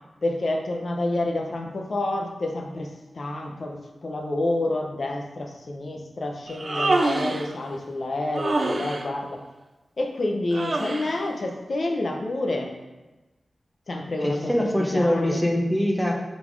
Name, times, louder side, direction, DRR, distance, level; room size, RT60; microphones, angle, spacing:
voice 1, 0.2-9.4 10.0-12.7 13.9-15.4, left 2 dB, 50° left, 3 dB, 0.8 m, -28 dB
Human voice, 6.5-7.5 8.3-9.1 10.5-11.2, right 2 dB, 40° right, 0.4 m, -26 dB
voice 2, 14.2-16.2, left 1 dB, 5° left, 0 dB, 0.9 m, -23 dB
5.7 x 4.1 x 4.7 m, 1.1 s
wide cardioid pair, 130°, 0 cm